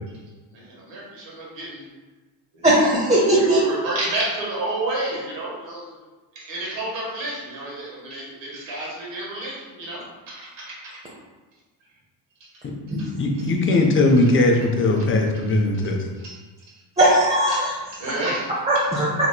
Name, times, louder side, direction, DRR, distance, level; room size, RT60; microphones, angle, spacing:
voice 1, 0.4-1.9 2.5-2.6 3.3-6.0 6.3-11.0 12.4-12.5 16.2-16.4 17.5-18.8, right 2 dB, 60° right, -5 dB, 1.4 m, -31 dB
voice 2, 2.6-3.6 12.9-13.0 17.0-17.7 18.7-19.3, right 1 dB, 15° right, -8 dB, 0.6 m, -18 dB
voice 3, 13.2-16.0, left 2 dB, 25° left, 1 dB, 0.5 m, -19 dB
3.0 x 2.9 x 2.3 m, 1.3 s
supercardioid pair, 70°, 50 cm